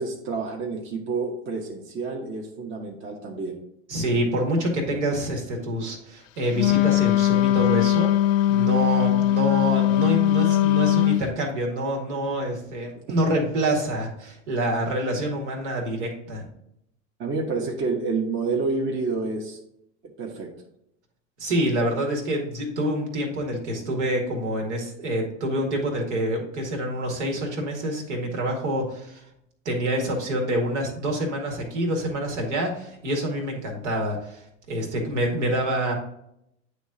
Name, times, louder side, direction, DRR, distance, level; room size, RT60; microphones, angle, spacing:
voice 1, 0.0-3.6 12.9-13.0 17.2-19.6 20.2-20.5, right 4 dB, 35° right, 0 dB, 1.1 m, -29 dB
voice 2, 3.9-8.1 8.5-16.5 21.4-29.2 29.7-35.9, right 1 dB, 75° right, 2 dB, 2.0 m, -27 dB
Wind instrument woodwind instrument, 6.5-11.3, left 13 dB, 55° left, 0.5 m, -20 dB
9.2 x 3.2 x 3.8 m, 0.77 s
hypercardioid pair, 95°, 35 cm